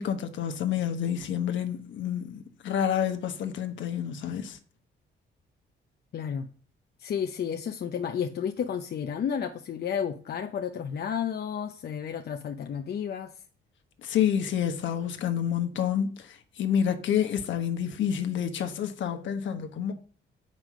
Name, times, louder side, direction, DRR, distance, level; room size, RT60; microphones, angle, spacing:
voice 1, 0.0-4.6 14.0-19.9, left 9 dB, 70° left, 1.2 m, -28 dB
voice 2, 6.1-6.5 7.0-13.3, left 8 dB, 55° left, 0.7 m, -32 dB
7.4 x 5.3 x 6.2 m
cardioid pair, 90°, 20 cm